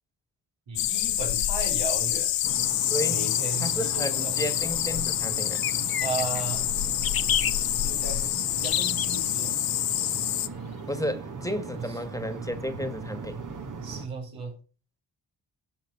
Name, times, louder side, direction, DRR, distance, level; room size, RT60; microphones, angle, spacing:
voice 1, 0.7-2.3 3.1-4.4 6.0-6.6 7.8-9.5 11.8-12.0 13.8-14.5, right 3 dB, 85° right, 4.8 m, -35 dB
sound 1, 0.8-10.5, left 13 dB, 85° left, 0.7 m, -27 dB
sound 2, 2.4-14.1, right 5 dB, 45° right, 1.7 m, -39 dB
sound 3, 2.5-2.6 5.5-6.4 7.0-7.7 8.6-9.4, left 9 dB, 55° left, 0.8 m, -29 dB
voice 2, 2.9-3.2 3.6-5.6 10.9-13.4, equal, 10° left, 1.8 m, -32 dB
13.0 x 5.3 x 5.9 m
supercardioid pair, 50°, 42 cm